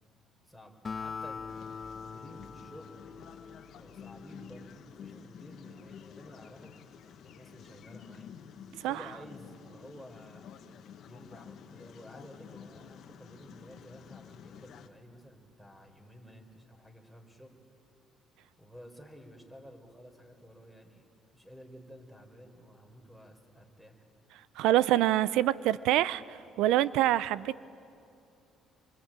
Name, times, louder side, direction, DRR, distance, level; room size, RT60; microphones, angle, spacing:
voice 1, 0.4-1.5 2.0-3.0 3.7-6.7 7.0-8.3 8.9-10.5 11.1-17.6 18.6-21.1 21.3-24.0, equal, 5° right, 4 dB, 4.3 m, -52 dB
Acoustic guitar, 0.8-4.4, left 5 dB, 35° left, 1.2 m, -42 dB
sound 1, 1.5-14.9, left 7 dB, 65° left, 1.5 m, -51 dB
voice 2, 24.6-27.7, right 14 dB, 85° right, 19 dB, 0.6 m, -26 dB
25.0 x 24.5 x 8.9 m, 2.7 s
cardioid pair, 95°, 0 cm